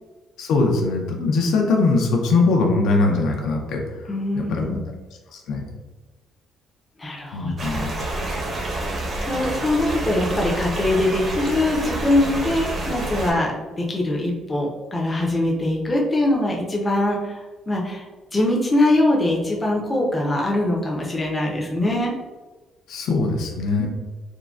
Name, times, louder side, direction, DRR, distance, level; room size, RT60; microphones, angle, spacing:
voice 1, 0.4-3.8 4.3-4.6 5.3-5.7 7.3-7.9 22.9-23.9, left 3 dB, 75° left, 1 dB, 0.5 m, -21 dB
voice 2, 4.1-4.9 7.0-7.9 9.2-18.0 18.3-22.1 23.8-23.9, left 1 dB, 15° left, -2 dB, 0.5 m, -22 dB
sound 1, 7.6-13.3, right 1 dB, 35° right, 0.6 m, -28 dB
3.7 x 2.1 x 2.3 m, 1.2 s
cardioid pair, 155°, 0 cm